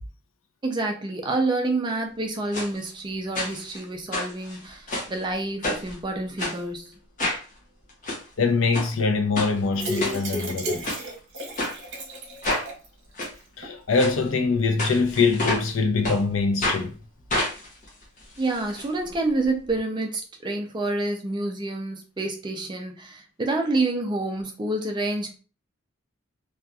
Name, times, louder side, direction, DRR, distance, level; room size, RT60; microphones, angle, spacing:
voice 1, 0.6-6.9 18.4-25.4, right 2 dB, 20° right, 0.4 m, -28 dB
sound 1, 2.5-2.7 3.3-3.8 4.1-5.2 5.6-5.9 6.4-6.6 7.2-7.4 7.9-8.2 8.7-8.9 9.3-9.5 10.0-10.5 10.8-11.0 11.6-11.7 12.4-12.7 13.2-13.3 13.9-14.1 14.8-15.7 16.0-16.2 16.6-16.8 17.3-18.8 19.1-19.2 19.4-19.5, left 1 dB, 35° left, 0.7 m, -28 dB
voice 2, 8.4-10.9 13.6-17.0, left 4 dB, 70° left, 0.5 m, -23 dB
sound 2, 9.7-12.9 13.2-13.3 13.6-13.7, equal, 55° right, 0.8 m, -32 dB
2.7 x 2.3 x 2.3 m
head